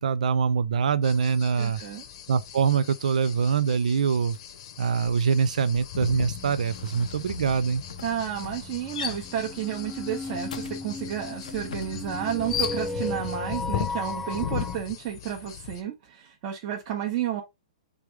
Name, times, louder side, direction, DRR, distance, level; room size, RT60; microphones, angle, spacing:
voice 1, 0.0-1.8 2.3-4.4 4.8-7.8, right 6 dB, 80° right, 0.4 m, -24 dB
sound 1, 1.0-15.8, left 10 dB, 45° left, 0.8 m, -39 dB
voice 2, 1.6-2.0 8.0-17.4, right 10 dB, 40° right, 1.0 m, -31 dB
sound 2, 4.3-4.6 4.9-13.3, left 7 dB, 85° left, 0.6 m, -38 dB
sound 3, 6.0-14.8, left 3 dB, 5° left, 0.4 m, -37 dB
3.5 x 3.4 x 4.6 m
hypercardioid pair, 150°, 4 cm